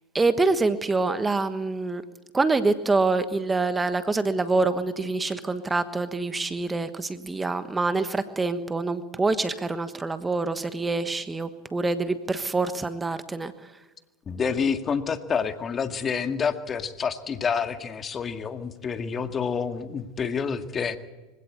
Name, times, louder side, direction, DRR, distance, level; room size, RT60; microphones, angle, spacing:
voice 1, 0.1-2.0 2.3-13.7, right 3 dB, 15° right, 11 dB, 1.3 m, -26 dB
voice 2, 14.3-21.0, left 6 dB, 30° left, 8 dB, 2.0 m, -28 dB
25.0 x 16.5 x 8.3 m, 1.2 s
hypercardioid pair, 95°, 0 cm